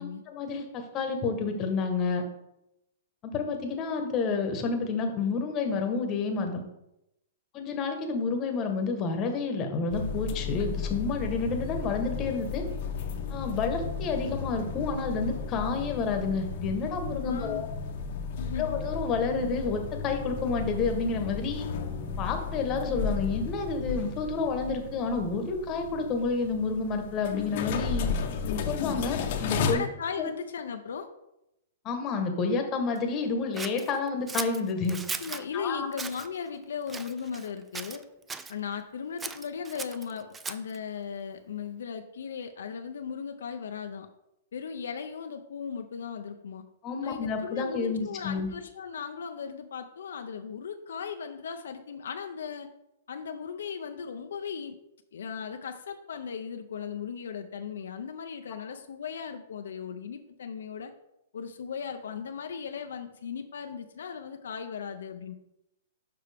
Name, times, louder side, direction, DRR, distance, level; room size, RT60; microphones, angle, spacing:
voice 1, 0.0-2.2 3.2-6.6 7.5-12.6 13.3-17.7 18.6-21.7 22.2-28.1 28.7-29.8 30.2-30.3 31.8-35.0 35.5-35.9 46.8-48.5, left 4 dB, 25° left, 5 dB, 1.1 m, -29 dB
sound 1, 9.9-29.7, left 5 dB, 50° left, 0.8 m, -34 dB
voice 2, 17.2-17.7 18.4-18.8 29.7-31.1 35.2-38.0 38.5-44.1 44.5-46.6 47.0-52.7 53.1-54.8 55.1-60.9 61.3-65.3, left 6 dB, 80° left, 6 dB, 0.5 m, -37 dB
Scissors, 33.6-35.5 35.9-36.3 36.9-37.5 37.7-38.5 39.2-40.8, right 4 dB, 10° right, 0.3 m, -37 dB
6.8 x 5.5 x 3.4 m, 0.86 s
hypercardioid pair, 145°, 0 cm